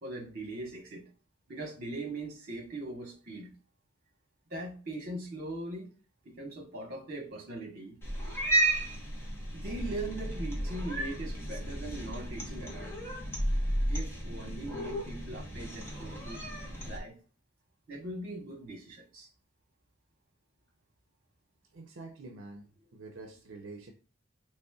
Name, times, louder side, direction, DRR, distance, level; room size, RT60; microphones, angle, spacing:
voice 1, 0.0-1.1 1.5-3.5 4.5-5.9 6.2-8.0 9.5-12.9 13.9-16.4 16.9-17.2 17.9-19.3, right 2 dB, 50° right, 1.2 m, -40 dB
Cat, 8.0-17.0, right 1 dB, 10° left, 1.0 m, -33 dB
voice 2, 21.7-23.9, right 3 dB, 75° right, 0.6 m, -47 dB
4.1 x 3.2 x 2.3 m
head